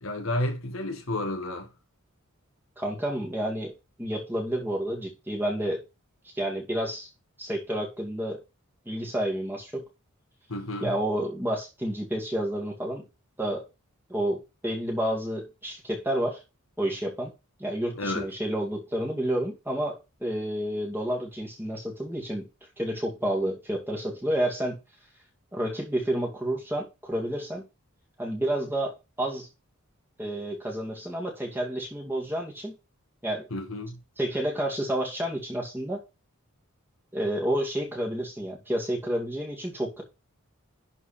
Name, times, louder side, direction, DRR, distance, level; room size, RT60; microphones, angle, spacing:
voice 1, 0.0-1.7 10.5-10.9 18.0-18.3 33.5-34.0, left 1 dB, 70° left, 1.8 m, -31 dB
voice 2, 2.8-3.7 4.0-5.8 6.2-7.1 7.4-8.4 8.9-9.8 10.8-13.0 13.4-13.6 14.1-16.4 16.8-17.3 17.6-22.5 22.8-24.8 25.5-27.6 28.2-29.5 30.2-32.7 33.2-33.5 34.2-36.0 37.1-40.0, right 1 dB, 10° right, 2.3 m, -30 dB
11.0 x 4.3 x 4.4 m
head